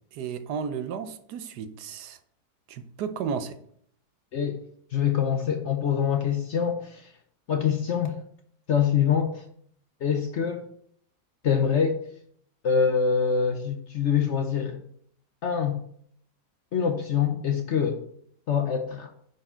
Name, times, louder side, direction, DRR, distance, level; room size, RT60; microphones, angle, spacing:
voice 1, 0.1-2.2 2.7-3.6, right 6 dB, 75° right, 1.2 m, -33 dB
voice 2, 4.9-7.1 7.5-8.2 8.7-9.4 10.0-10.7 11.4-12.0 12.6-14.8 15.4-15.8 16.7-18.0 18.5-19.1, left 7 dB, 60° left, 0.8 m, -25 dB
10.0 x 4.6 x 4.4 m
omnidirectional pair, 1.8 m